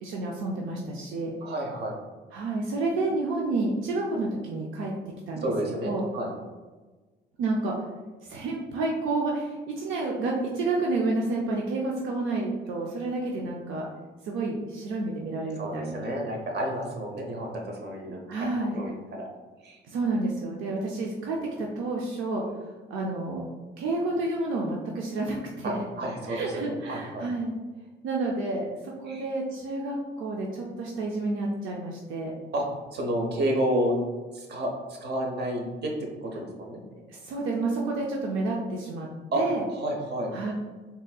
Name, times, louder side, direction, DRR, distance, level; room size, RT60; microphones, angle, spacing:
voice 1, 0.0-1.3 2.3-4.9 5.3-5.4 5.8-6.0 7.4-7.7 8.2-13.9 14.2-16.0 18.3-18.8 19.9-22.4 22.9-23.4 23.8-25.8 26.3-27.5 28.0-32.3 36.4-36.5 37.1-39.1 39.4-39.6 40.3-40.5, right 2 dB, 85° right, -2 dB, 0.5 m, -30 dB
voice 2, 1.4-2.0 5.4-6.3 15.6-18.5 18.7-19.3 19.6-19.8 25.6-27.3 29.1-29.3 32.5-32.7 32.9-34.0 34.3-34.7 35.0-36.8 39.3-39.4 39.7-40.3, right 1 dB, 55° right, 1 dB, 0.8 m, -30 dB
3.8 x 2.7 x 2.3 m, 1.3 s
cardioid pair, 90°, 20 cm